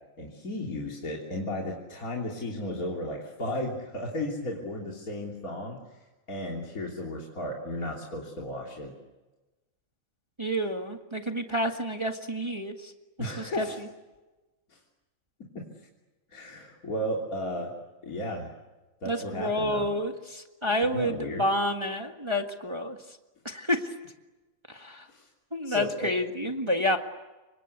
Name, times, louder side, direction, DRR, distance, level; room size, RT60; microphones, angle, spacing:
voice 1, 0.2-6.0 6.3-8.9 13.2-13.8 14.7-14.8 15.6-15.7 16.3-17.7 18.0-18.5 19.0-19.9 20.6-21.4 25.1-25.3 25.6-26.1, left 1 dB, 25° left, -2 dB, 3.4 m, -34 dB
voice 2, 10.4-12.9 13.4-13.6 19.0-23.0 23.4-23.9 24.7-25.0 25.5-27.0, equal, 20° right, 4 dB, 0.6 m, -29 dB
29.0 x 25.5 x 8.1 m, 1.1 s
omnidirectional pair, 3.5 m